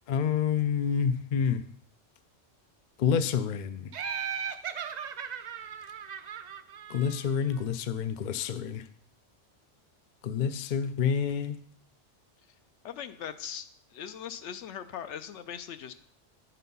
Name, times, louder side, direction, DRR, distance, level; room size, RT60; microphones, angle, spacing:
voice 1, 0.1-1.7 3.0-3.9 6.9-8.8 10.2-11.6, left 7 dB, 60° left, 0.5 m, -28 dB
Laughter, 3.9-7.6, right 7 dB, 70° right, 0.4 m, -37 dB
voice 2, 12.8-13.7 13.9-15.9, left 9 dB, 75° left, 0.9 m, -40 dB
10.0 x 4.2 x 5.4 m
omnidirectional pair, 1.2 m